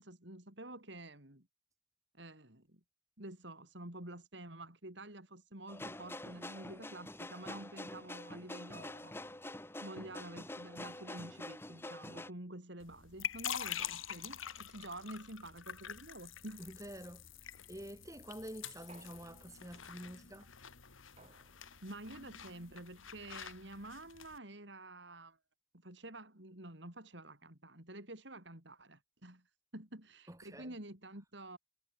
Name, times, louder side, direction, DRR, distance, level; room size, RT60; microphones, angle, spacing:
voice 1, 0.0-1.5 2.1-2.8 3.2-9.2 9.8-16.6 21.8-25.4 25.7-29.4 29.7-31.6, right 1 dB, 60° right, 4.7 m, -49 dB
sound 1, 5.7-12.3, left 1 dB, 10° left, 2.5 m, -46 dB
sound 2, 12.8-24.4, left 9 dB, 85° left, 2.7 m, -46 dB
voice 2, 16.6-17.2 17.7-20.5 30.3-30.8, right 1 dB, 15° right, 5.3 m, -48 dB
sound 3, 18.9-19.9 21.2-22.0, right 3 dB, 30° right, 4.9 m, -62 dB
head